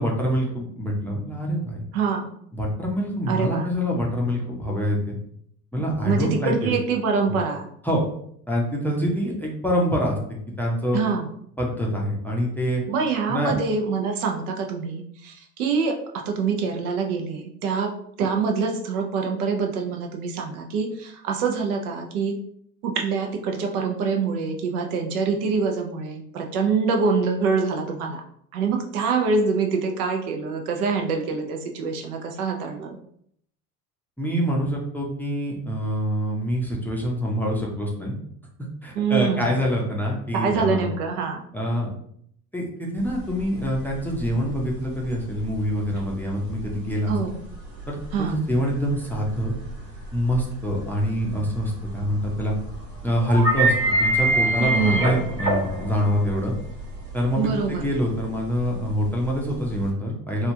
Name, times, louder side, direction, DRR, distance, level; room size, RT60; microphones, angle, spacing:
voice 1, 0.0-1.8 2.5-5.2 5.7-6.7 7.8-8.0 8.5-10.2 10.6-11.0 11.6-12.8 13.3-13.5 34.2-38.2 38.8-40.8 41.5-41.9 42.5-47.2 47.9-49.5 50.1-52.5 53.0-53.7 54.0-56.5 57.1-60.5, equal, 5° left, -2 dB, 0.5 m, -25 dB
voice 2, 1.9-2.3 3.3-3.7 6.0-7.7 10.9-11.3 12.9-17.9 18.2-22.4 22.8-28.2 28.5-33.0 38.9-39.5 40.3-41.4 47.1-47.4 48.1-48.4 54.6-55.1 57.4-57.9, right 5 dB, 65° right, 3 dB, 0.7 m, -25 dB
sound 1, 43.0-59.9, right 1 dB, 80° right, 1.0 m, -28 dB
3.1 x 2.4 x 2.7 m, 0.68 s
figure-of-eight pair, 70°, 47 cm